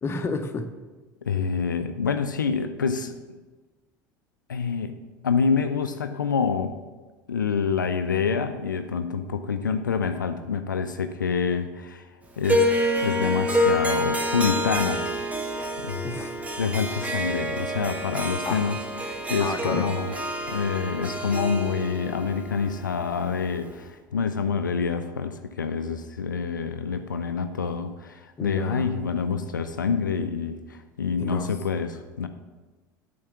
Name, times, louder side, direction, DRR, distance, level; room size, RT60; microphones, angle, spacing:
voice 1, 0.0-0.7 1.3-1.4 16.0-16.4 18.4-18.6 19.4-19.9 28.4-28.9 31.2-31.5, left 4 dB, 25° left, 6 dB, 0.7 m, -31 dB
voice 2, 1.2-3.1 4.5-4.9 5.2-6.8 7.3-12.1 12.4-12.7 13.0-15.1 15.8-16.1 16.6-20.1 20.5-32.3, left 6 dB, 80° left, 8 dB, 0.4 m, -27 dB
Harp, 12.4-23.7, equal, 15° right, 1.0 m, -28 dB
8.8 x 3.4 x 6.7 m, 1.3 s
figure-of-eight pair, 70°, 10 cm